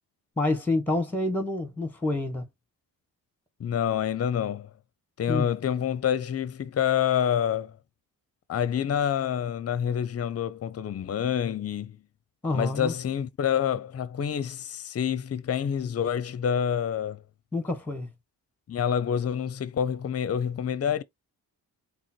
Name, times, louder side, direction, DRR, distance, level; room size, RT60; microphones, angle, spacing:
voice 1, 0.4-2.4 5.3-5.5 12.4-12.9 17.5-18.1, left 2 dB, 5° left, 1.2 m, -28 dB
voice 2, 3.6-4.7 5.2-7.8 8.5-12.0 12.5-17.2 18.7-21.0, left 8 dB, 35° left, 0.5 m, -27 dB
3.7 x 2.1 x 4.3 m
supercardioid pair, 45°, 46 cm